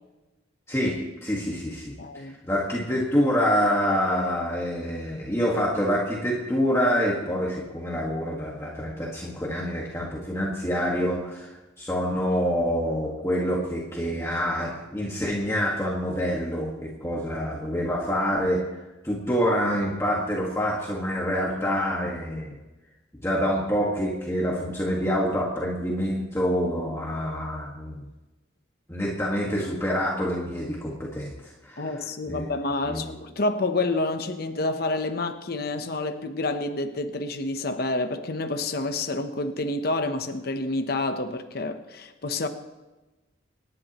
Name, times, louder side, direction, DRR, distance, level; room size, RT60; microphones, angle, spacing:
voice 1, 0.7-2.0 2.2-18.6 19.0-22.6 23.2-28.1 28.9-31.9 32.3-32.4 32.9-33.2, equal, 15° left, -4 dB, 1.6 m, -26 dB
voice 2, 2.0-2.4 31.8-42.5, left 2 dB, 55° left, 7 dB, 0.8 m, -28 dB
27.0 x 10.5 x 3.0 m, 1.1 s
head